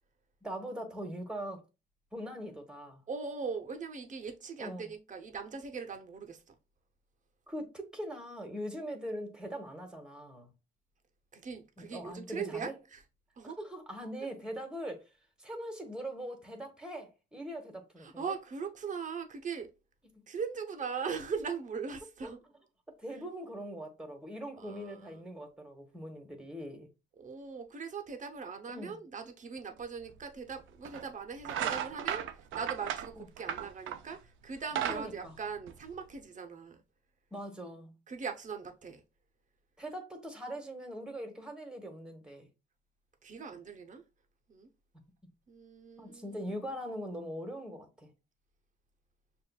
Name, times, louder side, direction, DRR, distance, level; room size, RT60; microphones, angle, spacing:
voice 1, 0.4-1.6 2.1-3.0 4.6-4.9 7.5-10.5 11.8-12.7 13.4-15.0 15.4-18.2 22.2-22.3 23.0-26.9 28.7-29.0 33.2-33.3 34.9-35.4 37.3-37.9 39.8-42.5 46.0-48.1, equal, 5° right, 1.2 m, -41 dB
voice 2, 3.1-6.5 11.3-13.0 13.4-13.6 18.0-19.7 20.3-22.4 24.6-25.2 27.2-32.3 32.5-36.8 38.1-39.0 43.2-44.0 44.5-44.7 45.5-46.4, right 5 dB, 40° right, 0.8 m, -40 dB
sound 1, 30.1-30.2 30.8-31.1 31.4-34.1 34.5-36.2, right 10 dB, 80° right, 0.5 m, -35 dB
6.5 x 2.5 x 2.3 m
cardioid pair, 90°, 20 cm